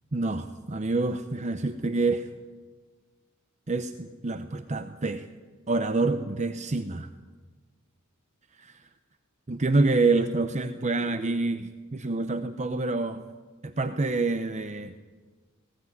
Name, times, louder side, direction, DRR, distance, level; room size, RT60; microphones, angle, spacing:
voice 1, 0.1-2.3 3.7-5.2 5.7-7.1 8.6-8.7 9.5-13.2 13.6-14.9, right 3 dB, 35° right, 9 dB, 0.8 m, -27 dB
20.0 x 16.5 x 9.7 m, 1.4 s
head